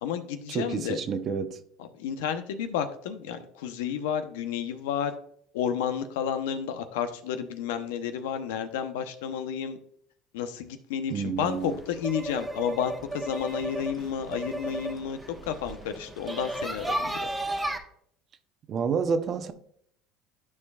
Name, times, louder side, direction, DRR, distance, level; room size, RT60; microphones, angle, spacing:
voice 1, 0.0-1.0 1.8-5.1 5.5-9.8 10.3-17.3, left 8 dB, 90° left, 0.8 m, -31 dB
voice 2, 0.5-1.6 11.1-11.7 18.7-19.5, right 6 dB, 45° right, 0.8 m, -29 dB
sound 1, 11.4-17.8, right 1 dB, 10° right, 1.1 m, -34 dB
12.0 x 4.9 x 2.4 m
supercardioid pair, 100°, 0 cm